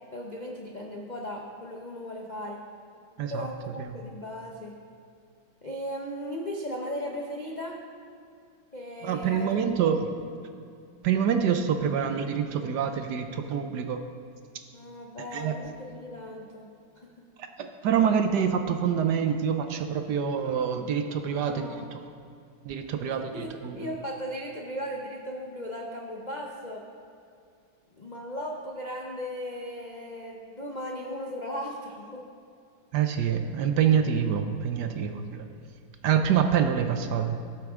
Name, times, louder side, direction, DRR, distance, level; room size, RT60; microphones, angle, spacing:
voice 1, 0.1-2.6 3.3-4.8 5.6-7.8 8.7-9.9 14.7-17.2 21.3-21.8 23.2-23.5 23.8-26.8 28.0-32.2 34.9-35.5, equal, 50° left, -1 dB, 0.5 m, -37 dB
voice 2, 3.2-4.0 9.0-10.1 11.0-14.0 15.3-15.6 17.6-22.0 22.6-23.9 32.9-35.4 36.0-37.4, right 8 dB, 70° right, 7 dB, 1.1 m, -26 dB
18.0 x 7.7 x 3.6 m, 2.4 s
omnidirectional pair, 2.1 m